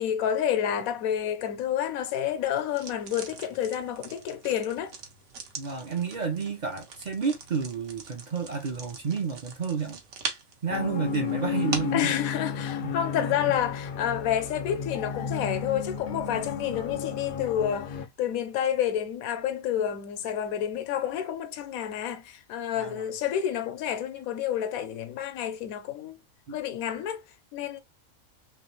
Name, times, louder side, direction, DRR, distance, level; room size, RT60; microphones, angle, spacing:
voice 1, 0.0-5.0 11.9-26.2 26.5-27.2 27.5-27.8, left 10 dB, 85° left, 1.1 m, -29 dB
sound 1, 2.7-12.1, right 5 dB, 75° right, 1.3 m, -41 dB
voice 2, 5.6-10.0 10.6-12.1 12.8-12.9 13.2-13.3 22.8-23.0 26.5-26.6, right 5 dB, 55° right, 0.5 m, -30 dB
sound 2, 10.7-18.1, left 7 dB, 65° left, 0.5 m, -33 dB
3.1 x 2.9 x 3.0 m
omnidirectional pair, 1.4 m